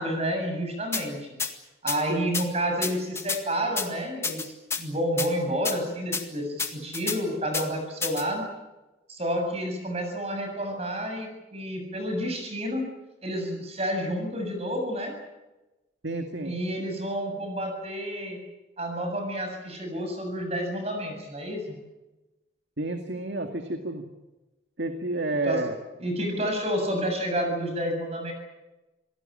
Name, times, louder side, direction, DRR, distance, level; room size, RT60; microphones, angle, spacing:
voice 1, 0.0-1.3 1.8-4.5 4.8-8.4 9.1-12.9 13.2-15.1 16.4-18.4 18.8-21.7 25.4-25.6 26.0-28.3, equal, 35° right, 3 dB, 7.5 m, -30 dB
sound 1, 0.9-1.0 1.4-1.5 1.9-2.0 2.3-2.4 2.8-3.4 3.8-3.9 4.2-4.8 5.2-5.3 5.6-5.8 6.1-6.2 6.6-7.2 7.5-7.6 8.0-8.2, left 5 dB, 15° left, 1.9 m, -29 dB
voice 2, 16.0-16.5 22.8-24.0 24.8-25.7, right 2 dB, 70° right, 5 dB, 2.1 m, -30 dB
27.5 x 17.5 x 8.9 m, 1.1 s
head